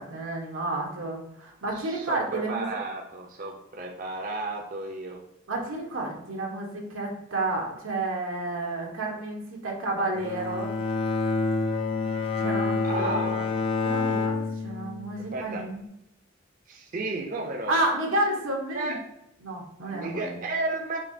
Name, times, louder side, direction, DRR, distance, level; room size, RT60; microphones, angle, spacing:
voice 1, 0.0-2.8 5.5-10.7 12.3-13.2 13.8-15.8 17.7-19.0 19.4-20.4, right 2 dB, 90° right, 0 dB, 1.1 m, -30 dB
voice 2, 1.7-5.2 12.8-13.5 15.3-15.6 16.7-17.8 18.7-19.0 19.9-21.0, right 2 dB, 40° right, 0 dB, 0.5 m, -33 dB
Bowed string instrument, 10.1-15.4, left 4 dB, 25° left, 0.4 m, -28 dB
5.2 x 2.8 x 2.7 m, 0.82 s
head